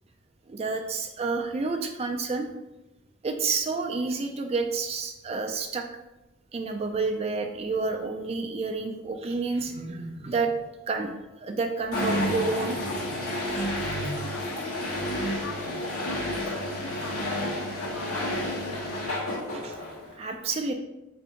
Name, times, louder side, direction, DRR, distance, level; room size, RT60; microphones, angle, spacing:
voice 1, 0.5-2.5 3.2-5.8 6.5-10.5 10.9-11.1 11.4-12.8 19.5-19.8 20.2-20.7, right 4 dB, 30° right, 4 dB, 0.3 m, -29 dB
sound 1, 11.9-20.1, left 1 dB, 85° left, 1.0 m, -30 dB
voice 2, 14.1-19.4, left 3 dB, 65° left, 5 dB, 0.5 m, -43 dB
3.6 x 2.6 x 4.3 m, 0.97 s
head